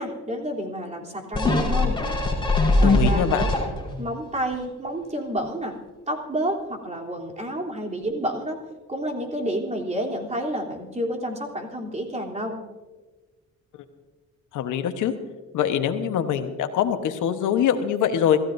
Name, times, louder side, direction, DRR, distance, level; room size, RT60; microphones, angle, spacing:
voice 1, 0.0-1.9 2.7-3.5 4.0-5.8 6.1-8.6 8.9-12.6, right 1 dB, 25° right, -1 dB, 3.4 m, -29 dB
sound 1, 1.3-4.0 4.5-4.6, left 2 dB, 15° left, 4.4 m, -21 dB
voice 2, 2.8-3.5 14.5-15.1 15.5-18.4, left 9 dB, 85° left, 8 dB, 1.2 m, -23 dB
27.0 x 14.5 x 2.7 m, 1.3 s
cardioid pair, 90°, 30 cm